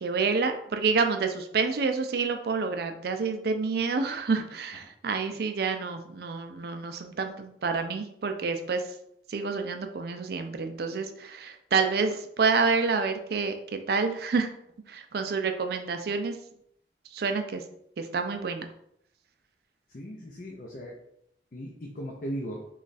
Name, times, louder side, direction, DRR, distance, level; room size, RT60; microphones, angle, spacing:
voice 1, 0.0-8.8 9.3-14.5 14.9-16.4 17.1-17.6 18.0-18.7, right 4 dB, 55° right, 6 dB, 0.4 m, -28 dB
voice 2, 19.9-21.0 21.5-22.7, equal, 45° left, -2 dB, 0.5 m, -37 dB
3.1 x 2.4 x 4.0 m, 0.72 s
head